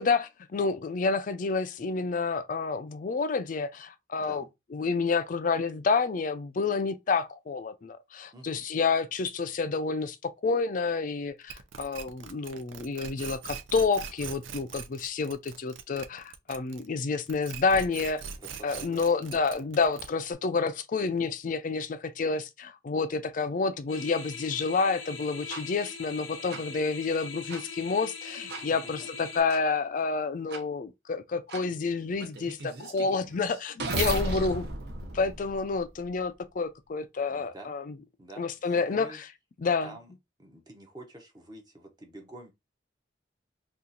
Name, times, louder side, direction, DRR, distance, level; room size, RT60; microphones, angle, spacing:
voice 1, 0.0-4.4 4.7-18.2 18.6-34.7 35.1-37.9 38.4-39.3 39.6-39.9, left 4 dB, 40° left, 0.4 m, -29 dB
voice 2, 4.2-4.5 8.3-8.6 18.4-19.7 26.4-26.9 28.5-29.1 37.3-37.8 38.2-39.2 39.8-40.1 40.4-42.5, right 1 dB, 20° right, 0.7 m, -48 dB
sound 1, 11.5-17.0 17.3-20.3, right 7 dB, 80° right, 0.5 m, -41 dB
sound 2, 23.9-29.4, left 5 dB, 80° left, 0.7 m, -41 dB
sound 3, 25.5-25.6 26.5-26.6 27.5-27.6 28.5-28.6 29.5-29.6 30.5-30.6 31.5-31.6 32.2-36.1, right 2 dB, 55° right, 0.8 m, -35 dB
2.8 x 2.4 x 3.8 m
head